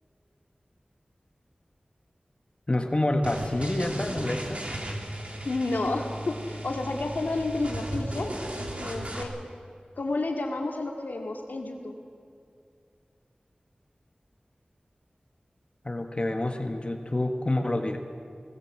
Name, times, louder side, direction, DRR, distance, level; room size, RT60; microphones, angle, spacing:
voice 1, 2.7-4.6 15.8-18.0, left 1 dB, 35° left, 4 dB, 1.7 m, -27 dB
sound 1, 3.2-9.2, right 1 dB, 45° right, 3.2 m, -36 dB
voice 2, 5.4-8.3 8.5-9.3 10.0-11.9, left 2 dB, 90° left, 2 dB, 2.4 m, -31 dB
20.0 x 19.5 x 7.6 m, 2.4 s
wide cardioid pair, 45°, 3 cm